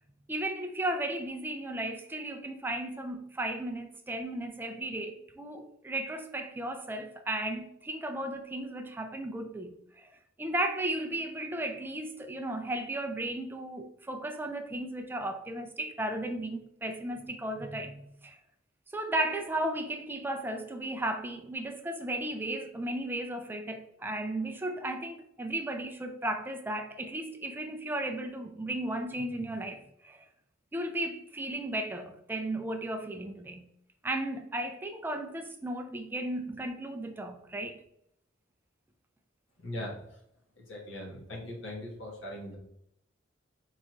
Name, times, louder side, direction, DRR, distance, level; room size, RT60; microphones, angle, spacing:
voice 1, 0.3-10.1 10.4-18.4 18.9-30.3 30.7-33.7 34.0-37.8, right 1 dB, 10° right, 0.3 m, -35 dB
voice 2, 39.6-40.2 40.6-42.6, left 1 dB, 80° left, 1.5 m, -40 dB
4.7 x 4.0 x 2.5 m
head